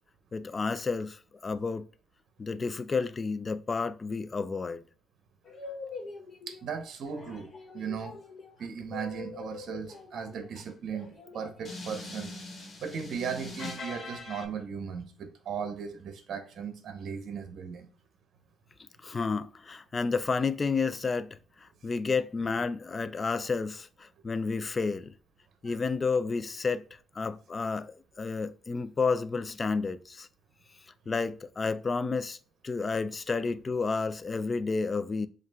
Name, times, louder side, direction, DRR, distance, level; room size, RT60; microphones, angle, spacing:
voice 1, 0.3-1.9 2.4-4.8 19.0-25.1 25.6-26.8 27.2-30.3 31.1-32.4 32.6-35.3, left 4 dB, 35° left, 0.3 m, -31 dB
sound 1, 5.4-6.6 7.1-14.5, left 3 dB, 50° left, 1.3 m, -43 dB
voice 2, 6.5-7.5 7.7-8.1 8.6-12.3 12.8-17.9 25.6-25.7, right 6 dB, 65° right, 0.7 m, -37 dB
7.2 x 2.4 x 2.3 m
cardioid pair, 90°, 0 cm